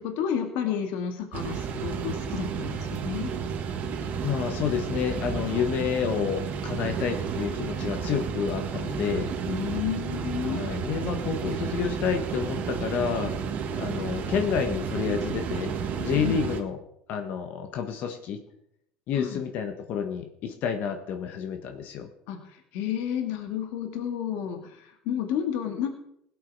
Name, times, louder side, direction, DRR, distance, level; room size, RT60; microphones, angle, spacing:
voice 1, 0.0-3.3 9.5-10.9 16.1-16.4 19.1-19.4 22.3-25.9, left 9 dB, 75° left, 5 dB, 2.1 m, -31 dB
sound 1, 1.3-16.6, right 6 dB, 50° right, 1.6 m, -32 dB
voice 2, 4.2-9.3 10.4-13.4 13.8-16.8 17.1-18.4 19.1-22.1, left 7 dB, 55° left, 6 dB, 1.5 m, -29 dB
17.0 x 8.6 x 4.8 m, 0.72 s
supercardioid pair, 120°, 4 cm